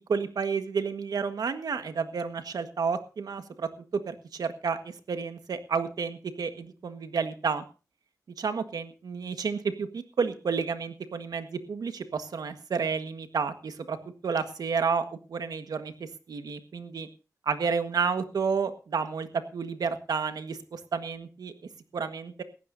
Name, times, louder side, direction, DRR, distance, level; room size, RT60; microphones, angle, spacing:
voice 1, 0.1-7.6 8.4-14.0 14.2-17.1 17.4-19.3 19.5-21.5 21.9-22.4, right 5 dB, 85° right, 9 dB, 1.6 m, -31 dB
19.5 x 15.5 x 2.7 m, 0.34 s
wide cardioid pair, 95°, 6 cm